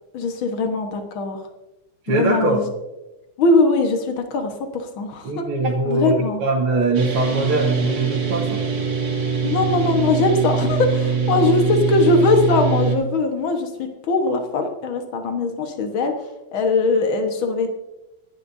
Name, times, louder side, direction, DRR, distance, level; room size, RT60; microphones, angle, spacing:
voice 1, 0.1-1.4 2.1-2.6 3.4-5.4 5.9-6.4 9.4-17.7, left 3 dB, 70° left, 4 dB, 2.2 m, -21 dB
voice 2, 2.1-2.6 5.2-6.1 6.4-8.6, right 2 dB, 85° right, -3 dB, 2.4 m, -21 dB
sound 1, 6.9-13.0, right 6 dB, 45° right, 3.2 m, -23 dB
24.0 x 11.5 x 2.7 m, 1.0 s
omnidirectional pair, 2.3 m